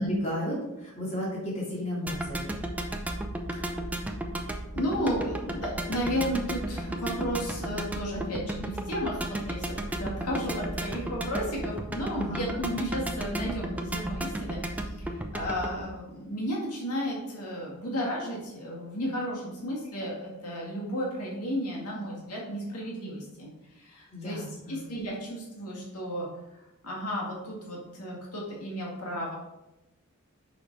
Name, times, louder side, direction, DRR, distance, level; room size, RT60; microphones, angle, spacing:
voice 1, 0.0-2.5 12.1-12.5 24.1-24.8, left 1 dB, 30° left, -5 dB, 2.9 m, -34 dB
sound 1, 2.1-15.8, right 1 dB, 5° right, 0.6 m, -34 dB
voice 2, 3.6-4.0 4.7-9.7 10.0-26.3 26.5-29.3, equal, 85° left, -3 dB, 1.9 m, -33 dB
6.7 x 5.3 x 4.6 m, 0.95 s
head